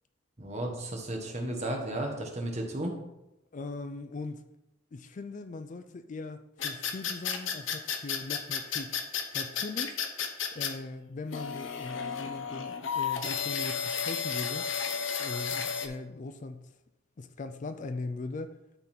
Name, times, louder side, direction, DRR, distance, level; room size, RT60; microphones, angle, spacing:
voice 1, 0.4-2.9, right 1 dB, 35° right, 1 dB, 1.4 m, -34 dB
voice 2, 3.5-4.4 4.9-9.0 9.3-10.0 10.5-14.7 15.2-16.7 17.2-18.6, left 3 dB, 35° left, 9 dB, 0.4 m, -40 dB
sound 1, 6.6-10.7 11.3-15.9, left 7 dB, 65° left, 0.8 m, -32 dB
11.5 x 4.0 x 4.5 m, 0.94 s
head